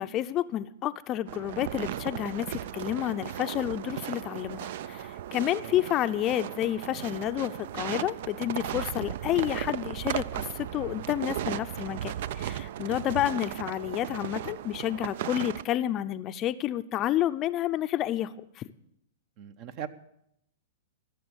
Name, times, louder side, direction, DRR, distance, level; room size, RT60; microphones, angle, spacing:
voice 1, 0.0-18.7, left 12 dB, 35° left, 12 dB, 0.5 m, -30 dB
sound 1, 1.3-15.6, right 11 dB, 60° right, 0.4 m, -36 dB
voice 2, 19.4-19.9, right 9 dB, 45° right, 14 dB, 0.8 m, -39 dB
15.0 x 7.0 x 8.0 m, 0.78 s
hypercardioid pair, 125°, 0 cm